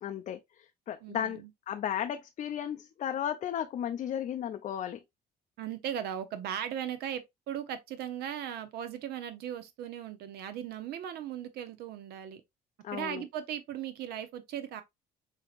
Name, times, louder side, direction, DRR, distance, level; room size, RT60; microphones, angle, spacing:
voice 1, 0.0-5.0 12.8-13.3, left 9 dB, 45° left, 0.4 m, -35 dB
voice 2, 1.0-1.5 5.6-12.4 12.9-14.8, right 10 dB, 75° right, 0.7 m, -38 dB
6.0 x 2.8 x 2.4 m
cardioid pair, 110°, 17 cm